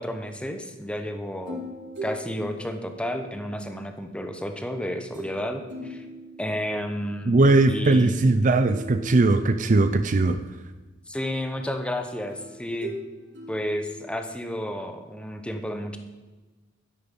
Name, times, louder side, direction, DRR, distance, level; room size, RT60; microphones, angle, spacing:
voice 1, 0.0-1.6 2.0-6.0 6.4-7.4 7.7-8.2 11.1-12.9 13.5-16.0, equal, 5° left, 6 dB, 1.1 m, -31 dB
sound 1, 1.5-3.8 5.1-5.4 5.7-7.0 8.7-10.4 12.3-14.6, equal, 65° right, 4.6 m, -40 dB
voice 2, 7.3-10.4, right 2 dB, 40° right, 10 dB, 0.5 m, -19 dB
12.5 x 11.0 x 5.4 m, 1.3 s
head